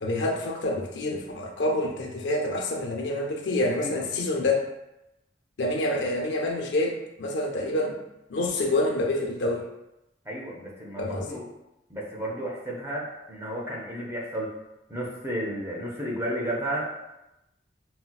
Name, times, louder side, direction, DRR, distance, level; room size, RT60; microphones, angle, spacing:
voice 1, 0.0-4.7 5.6-8.0 8.3-9.7 11.0-11.4, left 2 dB, 90° left, 0 dB, 0.6 m, -27 dB
voice 2, 3.8-4.1 10.2-11.4 11.9-14.5 14.9-16.9, right 1 dB, 15° right, -4 dB, 0.6 m, -32 dB
4.2 x 2.1 x 2.3 m, 0.91 s
head